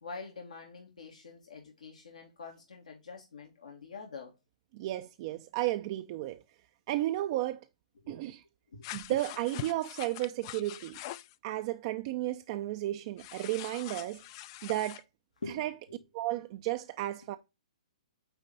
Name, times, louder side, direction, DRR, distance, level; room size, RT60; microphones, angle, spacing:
voice 1, 0.0-4.3 8.0-8.2 8.7-9.2 9.5-9.7 10.6-10.7 15.4-16.0, left 4 dB, 85° left, 1.9 m, -46 dB
voice 2, 4.7-6.4 6.9-7.7 8.1-8.4 8.9-11.0 11.4-14.2 14.6-15.0 15.4-15.9 16.1-17.4, right 15 dB, 40° right, 0.5 m, -33 dB
sound 1, 8.8-11.3 13.2-15.0, left 15 dB, 40° left, 0.4 m, -44 dB
9.1 x 3.2 x 3.9 m
hypercardioid pair, 135°, 4 cm